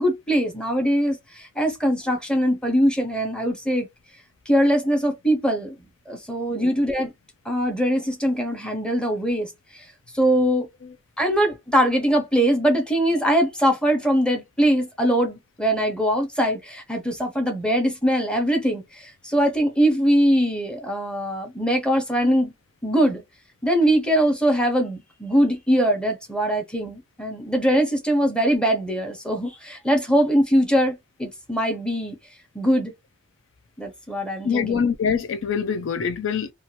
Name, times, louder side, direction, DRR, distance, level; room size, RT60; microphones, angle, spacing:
voice 1, 0.0-3.9 4.5-5.7 6.1-7.1 7.4-9.8 10.1-10.7 11.2-22.5 22.8-23.2 23.6-32.2 32.5-32.9 33.8-34.8, equal, 5° left, 0.9 m, -22 dB
voice 2, 34.4-36.5, left 6 dB, 65° left, 0.4 m, -24 dB
2.8 x 2.4 x 2.8 m
head